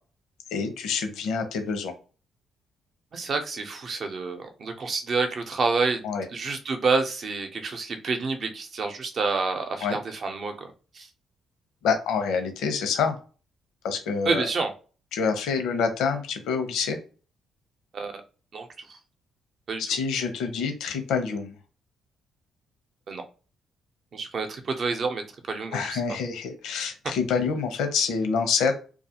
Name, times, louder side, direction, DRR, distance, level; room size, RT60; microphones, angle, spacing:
voice 1, 0.5-1.9 6.0-6.2 9.8-10.0 11.8-13.2 13.8-14.5 15.1-17.0 19.8-21.6 25.7-28.7, left 5 dB, 85° left, 7 dB, 0.7 m, -27 dB
voice 2, 3.1-6.0 6.3-10.7 10.9-11.1 14.2-14.7 17.9-18.2 18.5-19.0 19.7-19.8 23.1-23.2 24.1-25.2 25.5-26.0, right 4 dB, 50° right, 6 dB, 0.6 m, -28 dB
2.3 x 2.3 x 2.8 m, 0.37 s
cardioid pair, 90°, 0 cm